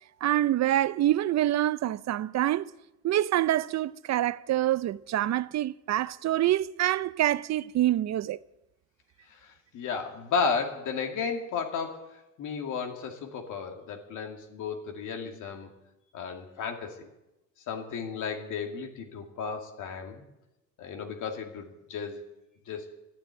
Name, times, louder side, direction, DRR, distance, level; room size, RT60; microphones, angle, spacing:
voice 1, 0.2-2.7 3.0-8.4, right 13 dB, 60° right, 0.5 m, -26 dB
voice 2, 9.3-15.7 16.1-17.1 17.7-20.3 20.8-22.2 22.7-22.9, left 5 dB, 80° left, 2.3 m, -34 dB
13.5 x 9.9 x 8.9 m
cardioid pair, 90°, 30 cm